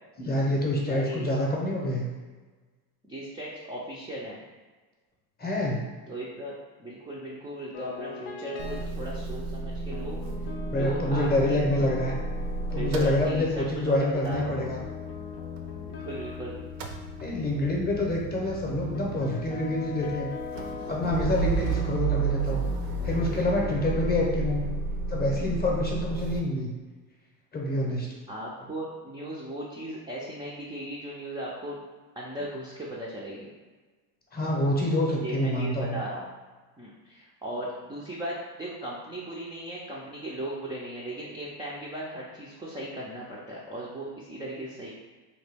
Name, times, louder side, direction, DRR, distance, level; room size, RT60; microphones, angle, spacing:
voice 1, 0.2-2.1 5.4-5.8 10.7-12.1 12.7-14.8 17.2-20.3 20.9-22.7 23.0-24.6 25.1-26.7 27.5-28.1 34.3-36.0, left 1 dB, 20° left, -2 dB, 0.7 m, -27 dB
voice 2, 0.9-1.3 3.1-4.4 6.1-10.2 10.7-11.6 12.7-14.6 15.8-16.6 28.3-31.8 32.2-33.5 35.2-36.3 36.8-44.9, right 1 dB, 10° right, -6 dB, 0.3 m, -37 dB
sound 1, 7.7-8.9 9.9-24.3, left 6 dB, 55° left, 0.5 m, -41 dB
Motor vehicle (road) / Engine starting / Idling, 8.6-16.3 16.6-26.4, right 4 dB, 70° right, 0.6 m, -33 dB
3.0 x 2.3 x 3.3 m, 1.4 s
supercardioid pair, 105°, 46 cm